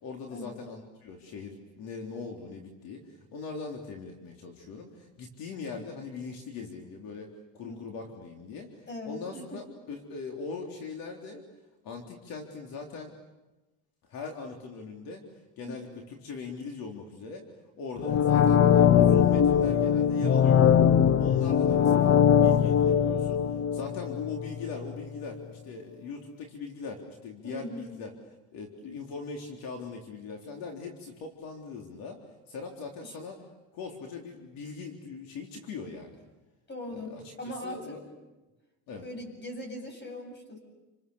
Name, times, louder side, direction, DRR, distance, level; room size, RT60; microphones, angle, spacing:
voice 1, 0.0-3.0 3.3-7.3 7.5-11.4 11.8-13.1 14.1-15.2 15.6-17.4 17.8-20.7 21.2-23.4 23.7-28.1 28.5-32.2 32.5-33.4 33.7-36.2 36.9-38.1 38.9-39.0, left 4 dB, 70° left, 2 dB, 3.9 m, -40 dB
voice 2, 8.9-9.6 15.6-15.9 27.4-28.0 33.0-33.2 36.7-38.0 39.0-40.6, left 1 dB, 30° left, 4 dB, 7.9 m, -40 dB
sound 1, 18.0-24.8 25.2-25.3, left 8 dB, 50° left, 1.3 m, -21 dB
30.0 x 27.0 x 7.2 m, 1.1 s
cardioid pair, 120°, 36 cm